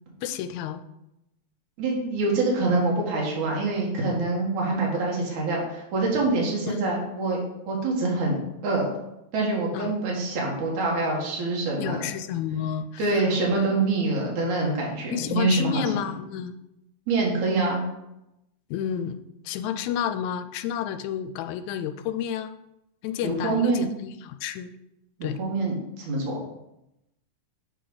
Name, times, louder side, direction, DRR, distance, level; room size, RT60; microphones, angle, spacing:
voice 1, 0.2-0.8 6.7-6.8 9.7-10.0 11.8-14.0 15.1-16.5 18.7-19.2 19.5-22.5 23.0-24.7 25.2-25.4, left 8 dB, 85° left, 9 dB, 1.9 m, -30 dB
voice 2, 1.8-7.4 7.7-8.9 9.3-12.1 13.0-15.8 17.1-17.8 23.2-23.8 25.2-26.4, right 3 dB, 80° right, -3 dB, 2.9 m, -25 dB
8.0 x 5.0 x 3.9 m, 0.87 s
omnidirectional pair, 3.3 m